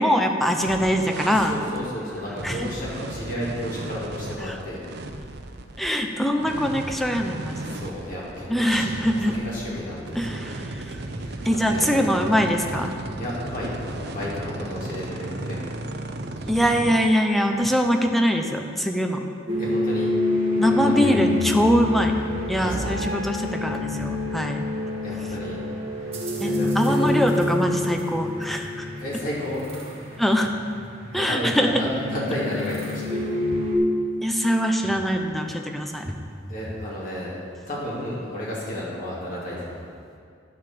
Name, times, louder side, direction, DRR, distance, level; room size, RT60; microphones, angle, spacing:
voice 1, 0.0-1.6 2.4-2.7 4.4-4.6 5.8-7.8 8.5-9.3 10.1-11.0 11.4-13.0 16.5-19.2 20.6-22.2 22.5-24.7 26.4-28.9 30.2-30.5 31.1-31.7 34.2-36.2, equal, ahead, 4 dB, 0.7 m, -23 dB
sound 1, 0.6-17.0, right 2 dB, 60° right, 0.7 m, -35 dB
voice 2, 1.3-4.8 7.5-10.5 11.1-11.9 13.2-15.7 19.6-20.1 20.6-21.2 22.5-22.9 25.0-25.6 26.0-26.1 26.4-27.2 29.0-29.7 31.1-33.4 36.5-37.3 37.6-39.8, left 1 dB, 45° left, -7 dB, 2.8 m, -32 dB
sound 2, 19.5-33.8, left 2 dB, 30° right, 1.6 m, -27 dB
11.0 x 6.2 x 6.9 m, 2.3 s
head